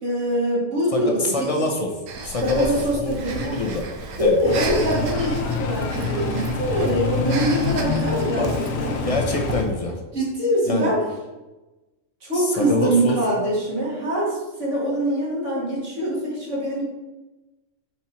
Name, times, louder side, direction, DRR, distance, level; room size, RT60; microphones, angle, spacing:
voice 1, 0.0-1.5 2.4-3.5 4.2-8.9 10.1-11.0 12.2-16.8, right 1 dB, 65° right, -6 dB, 2.1 m, -23 dB
voice 2, 0.9-2.0 2.2-2.7 3.0-3.9 4.2-4.4 8.4-8.5 8.8-10.0 10.7-10.9 12.3-13.2, left 2 dB, 30° left, 2 dB, 0.9 m, -25 dB
Breathing, 2.1-9.7, right 3 dB, 85° right, 1.2 m, -33 dB
sound 1, 4.5-9.6, left 4 dB, 85° left, 1.1 m, -26 dB
5.9 x 4.5 x 4.2 m, 1.1 s
omnidirectional pair, 1.3 m